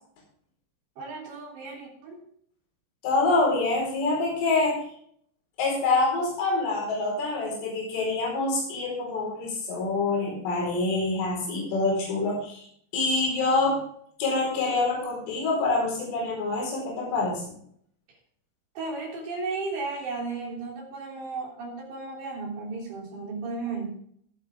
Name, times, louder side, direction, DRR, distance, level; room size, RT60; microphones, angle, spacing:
voice 1, 1.0-2.2 18.8-24.0, right 3 dB, 65° right, -2 dB, 5.4 m, -34 dB
voice 2, 3.0-4.9 5.6-12.7 12.9-13.8 14.2-17.4, left 3 dB, 80° left, -3 dB, 7.2 m, -26 dB
18.5 x 8.0 x 3.6 m, 0.64 s
omnidirectional pair, 5.7 m